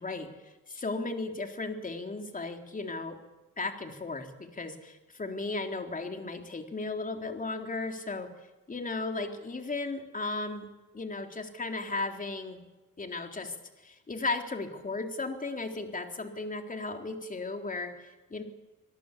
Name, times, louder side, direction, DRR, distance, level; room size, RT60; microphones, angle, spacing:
voice 1, 0.0-3.2 3.6-8.3 8.7-10.7 10.9-12.6 13.0-13.6 13.8-18.4, left 3 dB, 25° left, 4 dB, 3.8 m, -35 dB
26.0 x 18.0 x 8.5 m, 1.1 s
cardioid pair, 90°, 30 cm